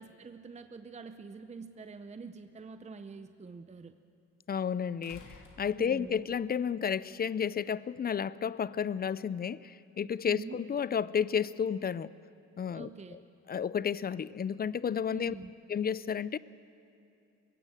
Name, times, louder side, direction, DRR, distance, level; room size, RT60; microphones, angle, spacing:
voice 1, 0.0-3.9 5.8-6.2 10.3-10.6 12.7-13.2 15.1-15.5, right 4 dB, 20° right, 9 dB, 0.7 m, -45 dB
sound 1, 1.7-1.8 5.0-6.3 7.7-7.8, left 3 dB, 80° left, 2.9 m, -53 dB
voice 2, 4.5-12.1 12.6-13.2 13.5-15.3 15.7-16.4, left 7 dB, 30° left, 19 dB, 0.5 m, -32 dB
21.5 x 16.0 x 7.8 m, 2.7 s
cardioid pair, 90°, 30 cm